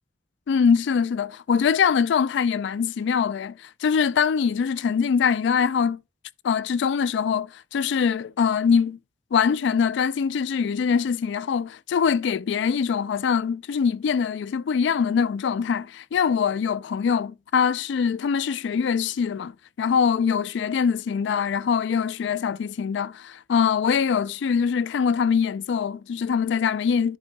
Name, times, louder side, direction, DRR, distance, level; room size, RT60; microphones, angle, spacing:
voice 1, 0.5-6.0 6.4-9.0 9.3-27.2, left 6 dB, 70° left, 0.3 m, -23 dB
11.0 x 3.8 x 4.0 m
head